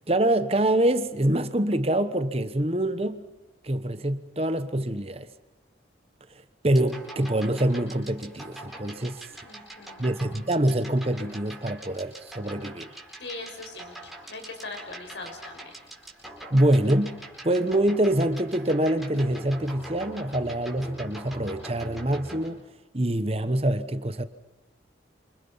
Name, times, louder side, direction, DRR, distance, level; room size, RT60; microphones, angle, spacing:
voice 1, 0.1-3.2 3.6-5.3 6.6-9.2 10.0-12.9 16.5-17.2 17.4-22.6 22.9-24.2, right 1 dB, 30° right, 1.1 m, -25 dB
sound 1, 6.7-22.5, right 1 dB, ahead, 4.4 m, -43 dB
voice 2, 9.4-10.1 13.2-13.9 14.3-15.7, left 3 dB, 75° left, 6.0 m, -40 dB
28.5 x 26.5 x 5.7 m
head